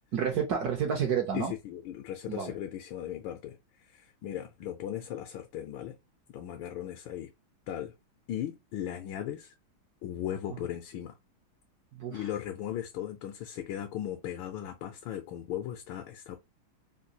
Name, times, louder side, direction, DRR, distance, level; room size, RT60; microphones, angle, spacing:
voice 1, 0.1-1.5 2.3-2.5 12.0-12.2, right 7 dB, 70° right, 1.0 m, -29 dB
voice 2, 1.3-3.6 3.8-6.0 6.3-7.3 7.7-7.9 8.3-9.5 10.0-11.2 12.1-16.4, left 11 dB, 80° left, 1.3 m, -37 dB
3.8 x 2.3 x 2.6 m
omnidirectional pair, 2.3 m